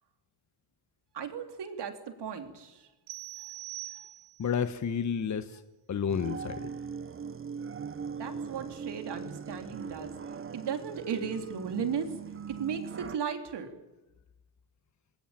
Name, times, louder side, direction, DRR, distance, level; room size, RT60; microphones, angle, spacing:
voice 1, 1.1-2.9 8.2-10.1 10.5-12.1 12.5-13.7, right 7 dB, 60° right, 5 dB, 3.7 m, -35 dB
sound 1, 3.1-4.6, right 17 dB, 85° right, 2.7 m, -43 dB
voice 2, 4.4-5.6 5.9-6.7, left 7 dB, 35° left, 10 dB, 1.3 m, -31 dB
sound 2, 6.1-13.2, right 6 dB, 25° right, 0.9 m, -40 dB
27.0 x 20.0 x 9.0 m, 1.0 s
cardioid pair, 105°, 47 cm